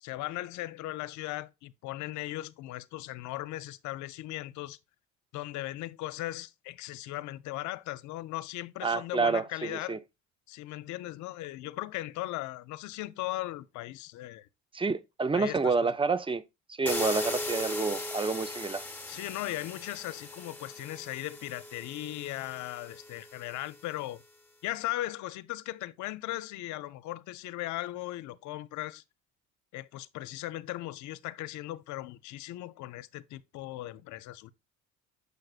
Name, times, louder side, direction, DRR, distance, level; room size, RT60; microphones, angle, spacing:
voice 1, 0.0-4.8 5.3-10.0 10.5-14.5 15.3-15.7 19.1-24.2 24.6-29.0 29.7-34.5, left 16 dB, 65° left, 0.6 m, -38 dB
voice 2, 8.8-10.0 14.7-16.4 16.7-18.8, right 4 dB, 15° right, 0.6 m, -29 dB
sound 1, 16.9-23.7, left 2 dB, 5° left, 1.1 m, -38 dB
6.6 x 6.5 x 2.4 m
supercardioid pair, 75°, 31 cm